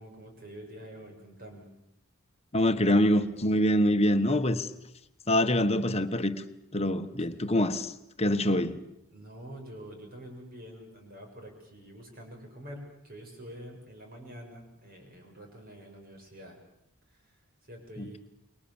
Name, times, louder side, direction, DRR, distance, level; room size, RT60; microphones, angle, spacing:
voice 1, 0.0-1.7 7.3-7.5 9.1-16.6 17.1-17.4 17.6-18.2, equal, 45° right, 6.7 m, -47 dB
voice 2, 2.5-4.7 5.3-6.4 6.7-7.9 8.2-8.8 18.0-18.2, left 1 dB, 30° left, 1.4 m, -25 dB
28.5 x 23.0 x 7.2 m
head